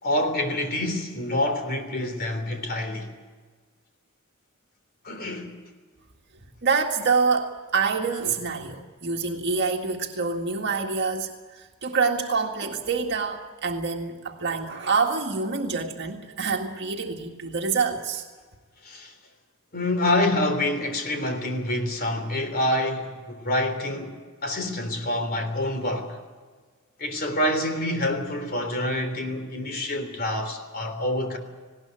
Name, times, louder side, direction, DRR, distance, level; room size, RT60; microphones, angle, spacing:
voice 1, 0.0-3.1 5.0-5.6 18.8-19.1 19.7-24.1 24.4-26.2 27.0-31.4, left 1 dB, 45° left, 3.5 m, -27 dB
voice 2, 6.6-18.3, right 4 dB, 55° right, 1.9 m, -26 dB
19.5 x 18.0 x 10.0 m
head